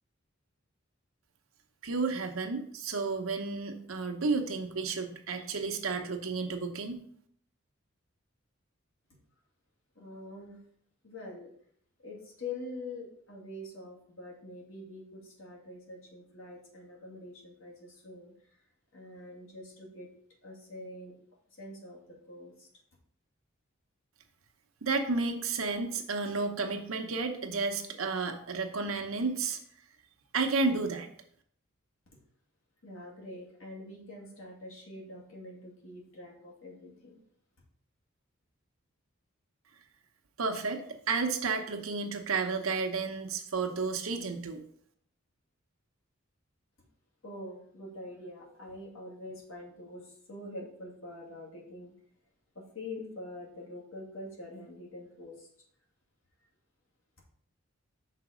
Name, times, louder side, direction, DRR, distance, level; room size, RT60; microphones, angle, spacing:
voice 1, 1.8-7.0 24.8-29.6 30.3-31.1 40.4-44.6, right 4 dB, 90° right, 5 dB, 0.9 m, -32 dB
voice 2, 10.0-10.6 11.0-11.5 12.0-18.3 18.9-20.1 20.4-21.1 21.6-22.7 32.8-37.2 47.2-51.9 52.6-55.5, left 2 dB, 80° left, -2 dB, 2.2 m, -45 dB
5.8 x 4.1 x 5.0 m, 0.62 s
head